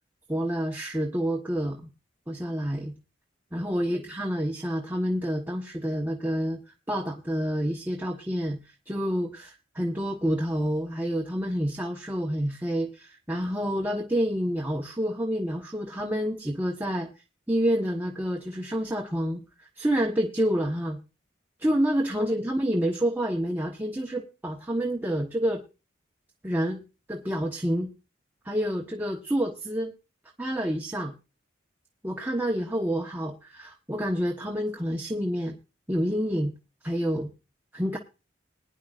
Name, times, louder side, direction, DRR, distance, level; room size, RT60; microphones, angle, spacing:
voice 1, 0.3-1.8 2.3-2.9 3.5-6.6 6.9-8.6 8.9-17.1 17.5-21.0 21.6-25.6 26.4-26.8 27.1-27.9 28.4-29.9 30.4-31.1 32.0-35.6 35.9-36.5 36.8-37.3 37.7-38.0, equal, 10° right, 0 dB, 1.0 m, -28 dB
20.5 x 10.0 x 2.4 m, 0.30 s
head